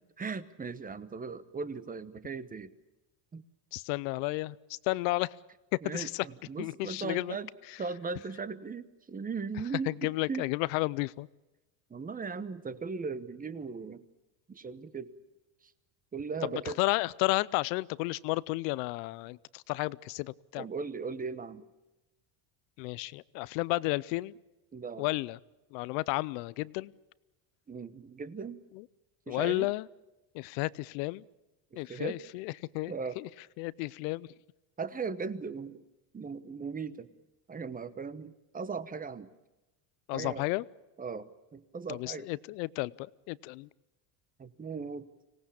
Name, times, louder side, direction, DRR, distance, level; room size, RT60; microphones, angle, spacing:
voice 1, 0.2-2.7 3.3-3.4 5.8-7.5 7.8-10.5 11.9-14.0 14.5-15.1 15.6-15.7 16.1-16.8 20.6-21.7 24.7-25.1 27.7-28.6 29.3-29.7 31.7-32.2 32.9-33.2 34.8-35.8 36.1-37.1 37.5-39.3 40.1-40.5 41.0-42.3 44.4-45.1, right 5 dB, 15° right, 14 dB, 1.0 m, -38 dB
voice 2, 3.7-5.4 5.8-6.3 6.6-7.4 9.9-11.3 16.4-20.6 22.8-24.3 25.0-25.4 25.7-26.9 28.7-28.8 29.3-29.9 30.3-31.2 31.8-33.3 33.6-34.3 40.1-40.6 41.9-43.7, left 22 dB, 75° left, 21 dB, 0.8 m, -32 dB
25.0 x 18.0 x 8.6 m, 1.0 s
supercardioid pair, 115°, 50 cm